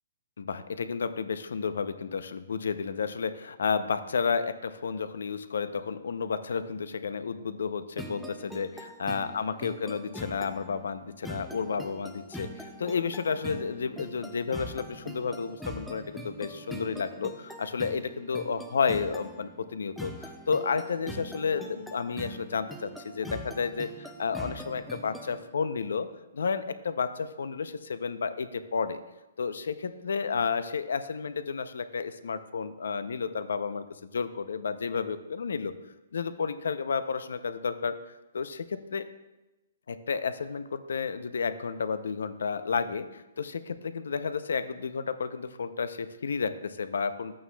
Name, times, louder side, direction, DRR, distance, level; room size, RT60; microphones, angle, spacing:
voice 1, 0.4-26.1 26.3-29.0 29.4-35.7 36.1-38.0 38.3-39.1 39.9-47.3, left 5 dB, 80° left, 12 dB, 0.5 m, -31 dB
sound 1, 8.0-25.4, equal, ahead, 0.4 m, -43 dB
11.0 x 8.6 x 2.3 m, 1.0 s
hypercardioid pair, 175°, 0 cm